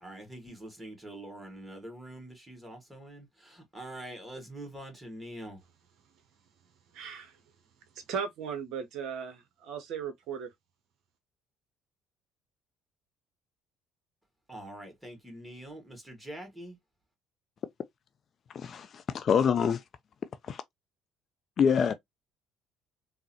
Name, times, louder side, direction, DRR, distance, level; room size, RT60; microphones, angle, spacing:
voice 1, 0.0-5.6 14.5-16.8, right 1 dB, 10° right, 1.7 m, -44 dB
voice 2, 6.9-7.4 8.1-10.5, right 7 dB, 60° right, 0.7 m, -37 dB
voice 3, 18.5-19.8 20.5-20.6 21.6-21.9, left 7 dB, 45° left, 0.3 m, -25 dB
3.7 x 2.0 x 2.7 m
figure-of-eight pair, 50°, 0 cm